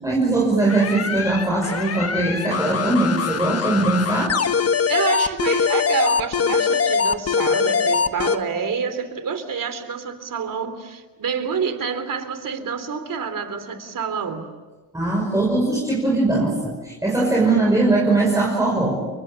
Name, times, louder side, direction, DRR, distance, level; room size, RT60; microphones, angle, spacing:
voice 1, 0.0-4.3 14.9-19.0, right 2 dB, 5° right, -2 dB, 5.8 m, -20 dB
sound 1, 0.7-8.4, left 6 dB, 35° left, 1.4 m, -22 dB
voice 2, 4.9-14.5, right 6 dB, 45° right, 10 dB, 3.5 m, -27 dB
30.0 x 23.5 x 7.2 m, 1.3 s
cardioid pair, 95°, 44 cm